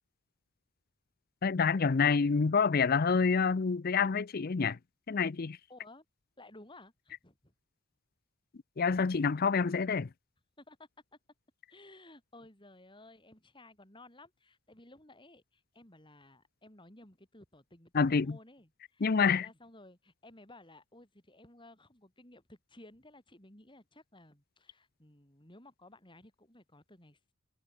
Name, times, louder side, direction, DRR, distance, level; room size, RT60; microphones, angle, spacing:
voice 1, 1.4-4.8 5.1-5.6 8.8-10.1 17.9-18.4 19.0-19.5, left 5 dB, 45° left, 0.5 m, -27 dB
voice 2, 5.7-6.0 6.4-7.5 10.6-10.9 11.7-27.3, left 2 dB, 20° left, 4.6 m, -56 dB
head